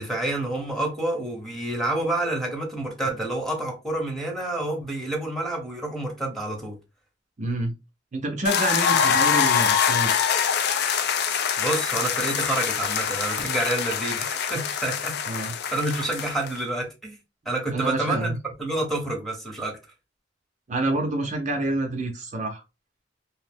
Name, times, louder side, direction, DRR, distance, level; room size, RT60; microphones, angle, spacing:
voice 1, 0.0-6.8 11.6-15.2 15.7-17.2 17.4-19.8, right 2 dB, ahead, 0.9 m, -28 dB
voice 2, 7.4-7.7 8.1-10.1 15.3-15.5 17.7-18.4 20.7-22.6, right 2 dB, 40° right, 0.5 m, -27 dB
sound 1, 8.4-16.6, left 7 dB, 65° left, 0.4 m, -24 dB
2.8 x 2.0 x 3.3 m
head